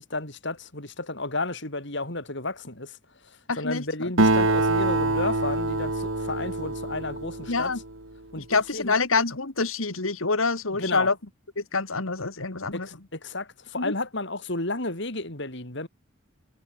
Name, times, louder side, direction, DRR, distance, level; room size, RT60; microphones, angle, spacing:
voice 1, 0.0-3.0 3.6-7.7 8.3-9.0 10.8-11.1 12.7-15.9, left 2 dB, 60° left, 5.5 m, -32 dB
voice 2, 3.5-4.1 7.5-7.8 8.5-11.1 11.6-12.9 13.8-13.9, left 4 dB, 85° left, 2.3 m, -26 dB
Acoustic guitar, 4.2-8.0, right 2 dB, 75° right, 4.0 m, -25 dB
head